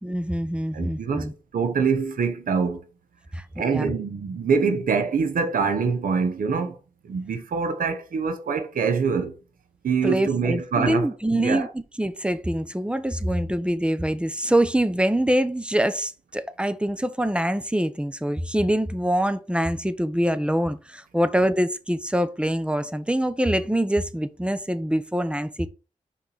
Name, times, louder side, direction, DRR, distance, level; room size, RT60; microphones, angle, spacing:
voice 1, 0.0-1.3 3.3-3.9 10.0-11.7 12.0-25.7, right 1 dB, 5° right, 0.8 m, -24 dB
voice 2, 0.7-2.8 3.6-6.8 7.0-9.3 9.8-11.7, right 5 dB, 90° right, 1.0 m, -25 dB
5.9 x 4.7 x 4.0 m
cardioid pair, 70°, 14 cm